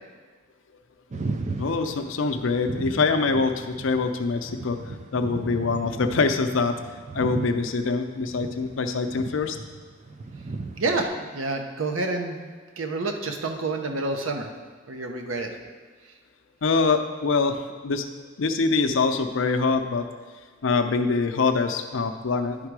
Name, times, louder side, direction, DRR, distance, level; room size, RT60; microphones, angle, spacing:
sound 1, 1.1-7.7 8.1-11.1, right 3 dB, 35° right, 0.4 m, -36 dB
voice 1, 1.6-6.7 7.1-9.6 16.6-18.1 18.4-20.0 20.6-22.7, left 4 dB, 75° left, 7 dB, 0.5 m, -24 dB
voice 2, 10.8-12.4 12.8-14.5 14.9-15.5, right 3 dB, 85° right, 3 dB, 0.8 m, -28 dB
10.5 x 3.7 x 4.7 m, 1.5 s
head